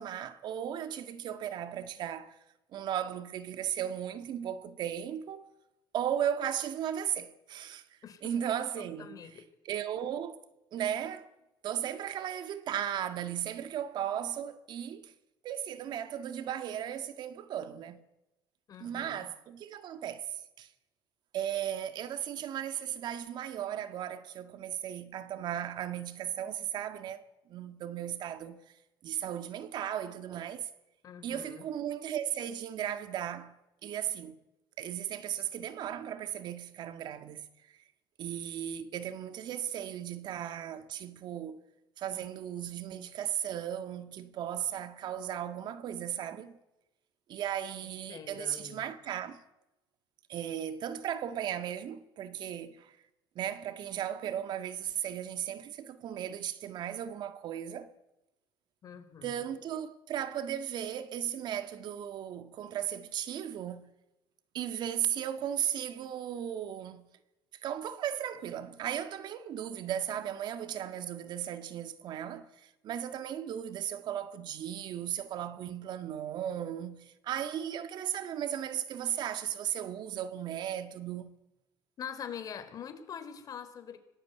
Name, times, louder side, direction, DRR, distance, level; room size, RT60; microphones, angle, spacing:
voice 1, 0.0-2.3 2.7-5.5 5.9-7.9 8.2-9.2 9.7-10.5 10.7-11.3 11.6-15.1 15.4-18.0 18.8-20.7 21.3-28.6 29.0-30.7 31.2-33.6 33.8-34.4 34.8-37.4 37.7-37.8 38.2-41.6 42.0-46.6 47.3-49.4 50.3-53.0 53.4-57.9 59.2-63.9 64.5-67.1 67.6-81.4, right 10 dB, 55° right, 1.8 m, -36 dB
voice 2, 8.0-8.3 8.8-9.4 18.7-19.3 31.0-31.7 47.8-48.9 58.8-59.4 82.0-84.0, left 8 dB, 45° left, 4.2 m, -44 dB
24.5 x 19.0 x 9.5 m
cardioid pair, 120°, 9 cm